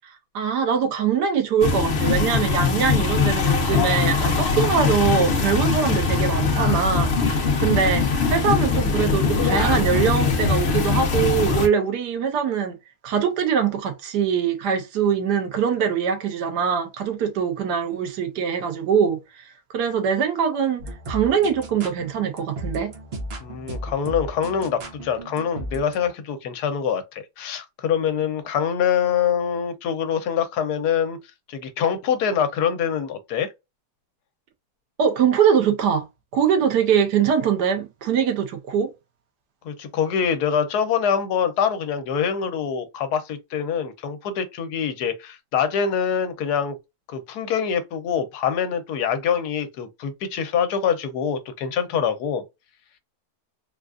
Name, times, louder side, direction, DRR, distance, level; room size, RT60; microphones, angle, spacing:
voice 1, 0.3-12.7 13.0-19.4 19.7-22.9 35.0-36.0 36.3-38.9, right 7 dB, 90° right, 1.4 m, -22 dB
sound 1, 1.6-11.7, left 4 dB, 50° left, 0.9 m, -21 dB
sound 2, 3.6-9.7, right 3 dB, 20° right, 0.9 m, -39 dB
sound 3, 20.8-26.1, right 1 dB, 50° right, 0.8 m, -35 dB
voice 2, 23.4-31.2 31.5-33.5 39.6-46.8 47.1-52.4, left 7 dB, 75° left, 1.2 m, -24 dB
3.8 x 2.3 x 2.4 m
omnidirectional pair, 1.7 m